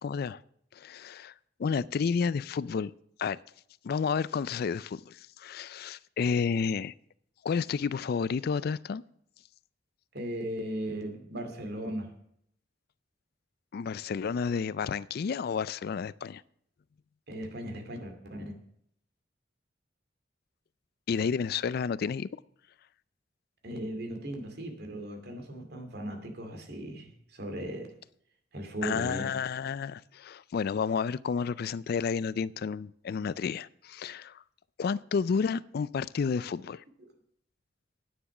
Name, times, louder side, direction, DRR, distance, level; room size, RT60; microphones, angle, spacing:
voice 1, 0.0-0.4 0.7-1.3 1.6-2.9 3.2-3.4 3.8-6.9 7.4-9.0 13.7-16.4 21.1-22.3 28.8-34.4 34.8-36.8, left 6 dB, 55° left, 0.4 m, -31 dB
voice 2, 10.1-12.1 17.3-18.5 23.6-27.9 28.5-29.4, right 1 dB, 60° right, 2.4 m, -37 dB
10.0 x 9.5 x 6.0 m
head